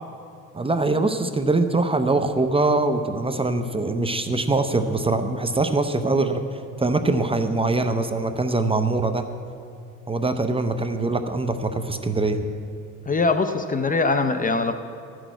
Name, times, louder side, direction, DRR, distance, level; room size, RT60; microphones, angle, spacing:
voice 1, 0.5-9.3 10.1-12.4, right 2 dB, 15° right, 7 dB, 0.6 m, -23 dB
voice 2, 13.1-14.7, left 3 dB, 25° left, 9 dB, 0.6 m, -22 dB
12.5 x 6.3 x 9.0 m, 2.4 s
cardioid pair, 115°, 32 cm